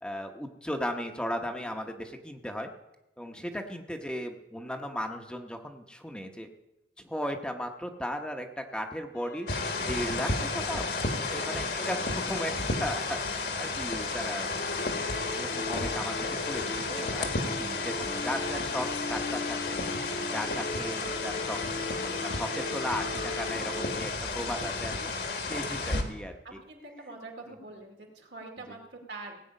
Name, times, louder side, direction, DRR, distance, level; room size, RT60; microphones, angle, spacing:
voice 1, 0.0-2.7 3.2-6.5 7.0-9.5 9.8-10.9 11.3-14.5 15.3-19.8 20.2-25.1 25.4-26.3, equal, 5° left, 4 dB, 0.9 m, -36 dB
sound 1, 9.1-11.0 12.5-24.0, left 2 dB, 90° left, 2.1 m, -38 dB
sound 2, 9.5-26.0, left 3 dB, 65° left, 1.7 m, -32 dB
voice 2, 24.3-24.8 26.4-29.4, right 2 dB, 80° right, 1 dB, 2.5 m, -45 dB
17.5 x 8.5 x 5.4 m, 0.94 s
head